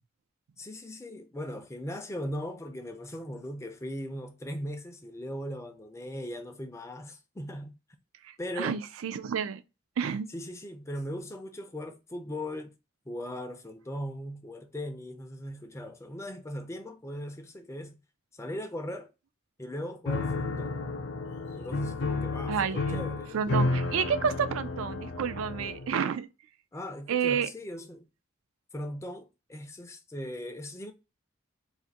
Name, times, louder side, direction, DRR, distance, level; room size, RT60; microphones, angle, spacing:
voice 1, 0.6-7.7 8.4-8.8 10.3-12.7 13.1-18.0 18.3-19.1 19.6-20.8 21.5-23.5 26.7-28.1 28.7-30.9, equal, 15° left, 0.4 m, -38 dB
voice 2, 8.2-9.6 10.0-10.3 22.5-23.0 23.3-26.3 27.1-27.5, right 7 dB, 75° right, 0.4 m, -30 dB
Piano, 20.1-26.0, left 2 dB, 55° left, 0.6 m, -32 dB
2.5 x 2.5 x 3.9 m
head